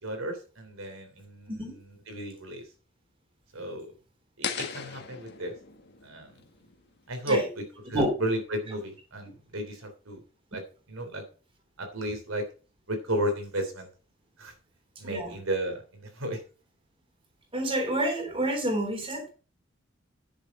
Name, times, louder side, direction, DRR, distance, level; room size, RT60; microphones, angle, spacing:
voice 1, 0.0-2.6 3.5-3.9 4.4-5.5 6.0-6.3 7.1-7.6 7.9-10.2 10.5-10.6 10.9-11.2 11.8-12.4 12.9-13.9 14.4-14.5 15.0-16.4, right 1 dB, 80° right, 5 dB, 3.3 m, -33 dB
sound 1, 4.4-7.5, left 6 dB, 55° left, 1.6 m, -38 dB
voice 2, 15.0-15.3 17.5-19.3, right 1 dB, 25° right, 3 dB, 3.4 m, -28 dB
10.5 x 7.3 x 5.3 m, 0.35 s
head